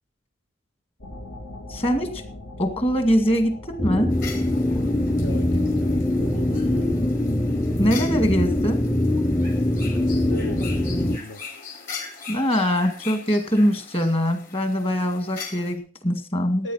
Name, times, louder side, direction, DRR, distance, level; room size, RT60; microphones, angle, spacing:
sound 1, 1.0-10.1, left 1 dB, 80° left, 3.7 m, -43 dB
voice 1, 1.7-2.2 2.6-4.1 7.8-8.8 12.3-16.7, equal, 30° left, 8 dB, 2.1 m, -22 dB
sound 2, 3.8-11.2, left 1 dB, 10° left, 0.6 m, -23 dB
sound 3, 4.1-15.7, left 5 dB, 45° left, 4.4 m, -41 dB
voice 2, 5.2-7.1 9.9-11.4 16.6-16.7, left 1 dB, 65° left, 6 dB, 1.1 m, -36 dB
15.0 x 9.6 x 5.8 m, 0.40 s
head